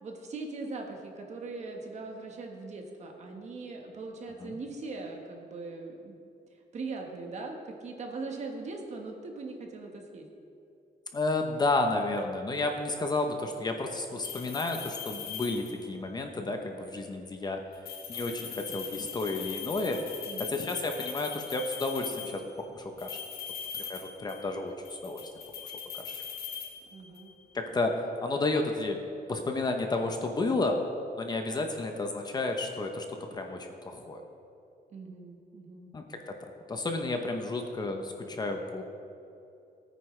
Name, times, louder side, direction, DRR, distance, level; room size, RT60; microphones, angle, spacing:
voice 1, 0.0-6.2 6.7-10.3 20.2-20.5 26.9-27.3 34.9-35.9, right 3 dB, 45° right, 2 dB, 1.3 m, -40 dB
voice 2, 11.1-17.6 18.1-20.0 20.4-23.2 23.7-24.8 25.0-25.2 25.9-26.2 27.5-29.0 29.3-30.8 31.2-34.2 35.9-36.4 36.7-38.8, left 2 dB, 25° left, 4 dB, 0.8 m, -31 dB
sound 1, 14.2-16.0 17.7-22.5 23.0-24.5 24.8-27.3, left 7 dB, 85° left, 1.6 m, -41 dB
17.5 x 9.2 x 3.2 m, 2.7 s
wide cardioid pair, 180°, 16 cm